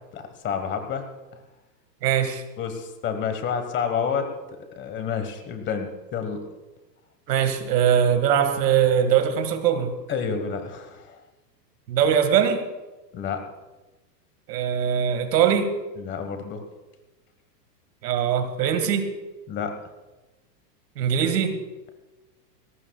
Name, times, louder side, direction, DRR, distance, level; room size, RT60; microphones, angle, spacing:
voice 1, 0.1-1.0 2.6-4.3 4.8-6.4 10.1-11.2 13.1-13.4 16.0-16.6 19.5-19.8, left 6 dB, 25° left, 7 dB, 1.4 m, -29 dB
voice 2, 2.0-2.4 7.3-9.9 11.9-12.7 14.5-15.7 18.0-19.1 21.0-21.6, right 8 dB, 75° right, 9 dB, 2.0 m, -21 dB
21.0 x 17.5 x 2.3 m, 1.1 s
supercardioid pair, 145°, 48 cm